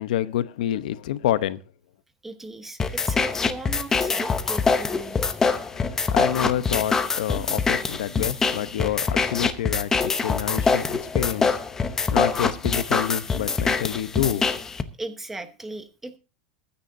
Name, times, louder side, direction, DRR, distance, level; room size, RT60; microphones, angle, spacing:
voice 1, 0.0-1.6 5.7-14.5, left 12 dB, 90° left, 0.9 m, -28 dB
voice 2, 2.2-5.2 15.0-16.2, right 2 dB, 5° right, 1.2 m, -37 dB
sound 1, 2.8-14.8, left 4 dB, 10° left, 0.8 m, -24 dB
22.0 x 9.8 x 2.7 m
supercardioid pair, 170°, 4 cm